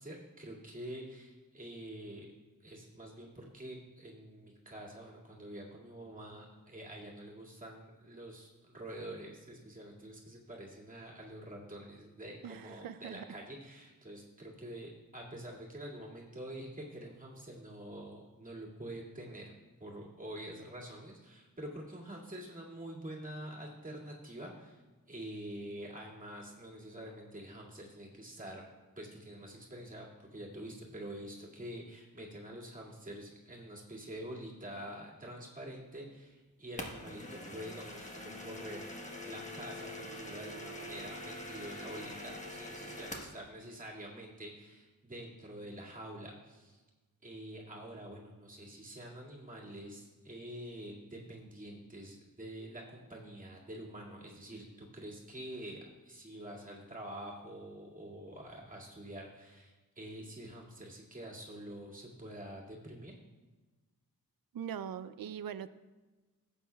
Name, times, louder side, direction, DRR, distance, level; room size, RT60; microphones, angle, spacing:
voice 1, 0.0-2.3 2.6-19.5 19.8-24.8 25.1-28.6 29.0-38.9 39.3-46.8 47.2-63.1, right 1 dB, 25° right, -4 dB, 2.2 m, -46 dB
voice 2, 12.4-13.2 64.5-65.7, right 8 dB, 75° right, 14 dB, 0.5 m, -41 dB
sound 1, 36.8-43.4, left 1 dB, 20° left, 1.2 m, -44 dB
17.0 x 8.3 x 2.3 m, 1.2 s
wide cardioid pair, 145°, 35 cm